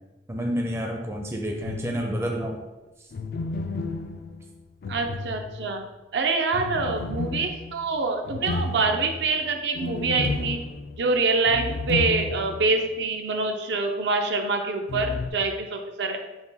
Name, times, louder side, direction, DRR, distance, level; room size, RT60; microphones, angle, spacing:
voice 1, 0.3-2.6, equal, 15° right, 1 dB, 0.4 m, -29 dB
sound 1, 1.6-2.3 3.1-5.9 6.5-12.8 13.0-13.1 14.9-15.3, left 3 dB, 55° left, 0.3 m, -32 dB
voice 2, 4.9-5.8 6.1-10.6 11.0-16.2, right 3 dB, 70° right, 4 dB, 0.5 m, -25 dB
5.8 x 2.2 x 4.0 m, 1.1 s
head